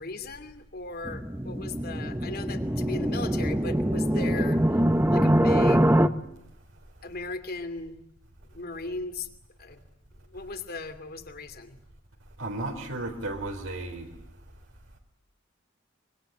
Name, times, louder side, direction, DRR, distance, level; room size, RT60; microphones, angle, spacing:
voice 1, 0.0-4.6 5.1-5.9 7.0-8.0 8.5-9.3 9.6-9.8 10.3-11.8, left 3 dB, 50° left, 10 dB, 2.6 m, -37 dB
sound 1, 1.0-6.1, right 1 dB, 10° right, 1.1 m, -24 dB
voice 2, 12.4-14.1, right 2 dB, 80° right, 2 dB, 3.8 m, -34 dB
24.5 x 24.0 x 9.2 m, 0.82 s
head